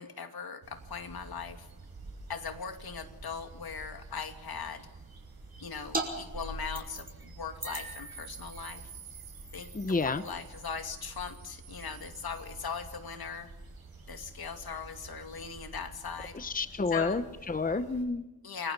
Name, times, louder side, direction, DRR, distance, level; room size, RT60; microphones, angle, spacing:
voice 1, 0.0-1.7 2.3-4.9 5.6-8.8 9.5-13.5 14.1-16.4 16.9-17.2 18.4-18.7, left 6 dB, 75° left, 6 dB, 2.5 m, -40 dB
sound 1, 0.6-18.0, right 3 dB, 70° right, 7.0 m, -50 dB
sound 2, 5.9-6.1 6.3-7.2 7.6-12.7, right 2 dB, 25° right, 5.5 m, -41 dB
voice 2, 9.7-10.2 16.3-18.2, left 4 dB, 20° left, 11 dB, 1.0 m, -30 dB
29.0 x 22.0 x 5.4 m, 1.0 s
wide cardioid pair, 130°, 37 cm